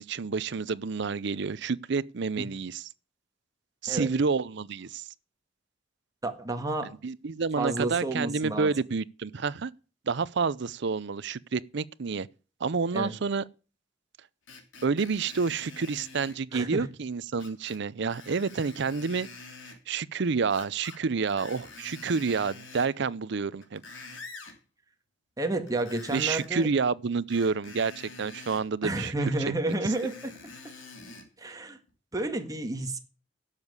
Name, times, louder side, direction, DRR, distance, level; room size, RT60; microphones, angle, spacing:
voice 1, 0.0-2.8 3.8-5.0 7.0-9.7 10.1-12.3 12.6-13.4 14.8-19.3 19.9-23.8 26.1-29.1, right 5 dB, 65° right, 0.6 m, -29 dB
voice 2, 6.2-6.9 7.5-8.7 12.9-13.1 16.5-16.9 25.4-26.7 28.8-30.3 31.4-31.8 32.1-33.0, right 2 dB, 20° right, 1.6 m, -30 dB
Screech, 14.5-16.4 17.4-17.8 18.1-19.8 20.5-21.0 21.3-23.0 23.5-24.6 25.7-26.7 27.3-28.6 29.7-31.3 31.9-32.0, left 3 dB, 85° left, 3.2 m, -46 dB
12.0 x 7.4 x 8.1 m
head